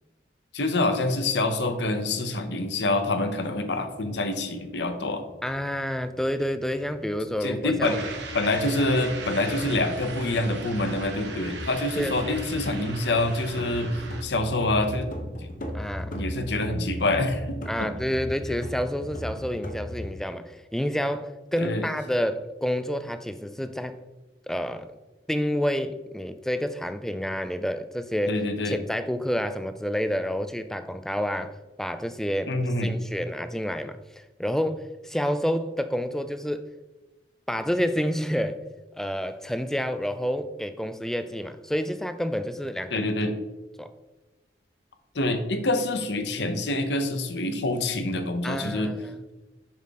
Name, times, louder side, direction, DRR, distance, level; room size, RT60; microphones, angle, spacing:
voice 1, 0.5-5.2 7.4-8.0 8.3-13.9 14.2-15.1 16.1-17.9 21.6-21.9 28.3-28.8 32.5-32.9 42.9-43.3 45.1-48.9, left 2 dB, 75° left, 8 dB, 0.9 m, -26 dB
sound 1, 3.7-20.1, equal, 50° left, 0.9 m, -39 dB
voice 2, 5.4-8.1 9.0-9.1 12.0-12.1 15.7-16.2 17.7-24.0 24.5-24.9 25.3-28.4 28.6-36.7 37.5-38.6 39.0-43.0 43.8-43.9 48.4-49.2, equal, 5° left, 10 dB, 0.3 m, -29 dB
sound 2, 7.8-14.2, right 3 dB, 80° right, 1.3 m, -39 dB
7.3 x 5.8 x 3.7 m, 1.1 s
head